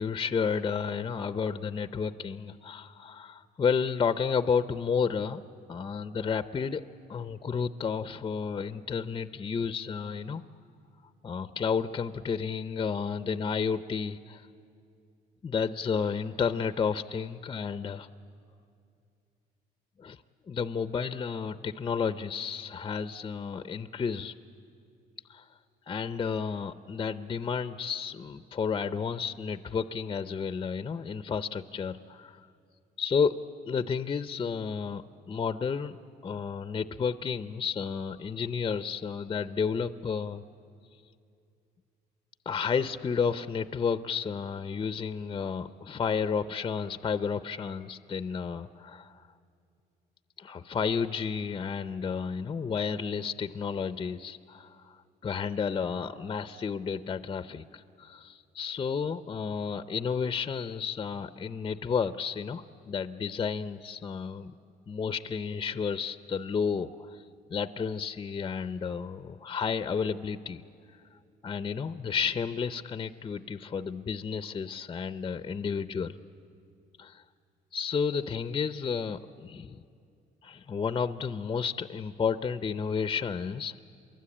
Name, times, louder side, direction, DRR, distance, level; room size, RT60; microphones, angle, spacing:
voice 1, 0.0-5.4 5.7-6.8 7.1-10.4 11.2-14.5 15.4-18.1 20.0-20.2 20.5-24.3 25.3-25.4 25.9-32.4 33.0-33.4 33.7-36.0 36.2-40.4 42.5-49.3 50.4-64.5 64.9-67.2 67.5-70.6 71.4-76.1 77.0-77.2 77.7-79.8 80.4-83.8, left 6 dB, 25° left, 12 dB, 0.6 m, -31 dB
29.0 x 23.0 x 8.6 m, 2.5 s
cardioid pair, 110°, 17 cm